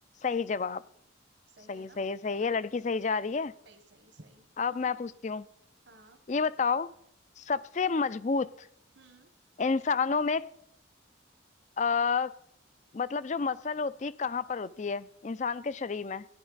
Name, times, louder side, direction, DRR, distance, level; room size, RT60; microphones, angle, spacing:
voice 1, 0.2-0.8 1.7-3.5 4.6-5.5 6.3-6.9 7.4-8.7 9.6-10.5 11.8-12.3 12.9-16.2, left 5 dB, 35° left, 0.4 m, -30 dB
voice 2, 1.5-2.0 3.6-5.0 5.8-6.2 8.9-9.3, right 2 dB, 65° right, 1.3 m, -57 dB
17.0 x 11.0 x 4.0 m
head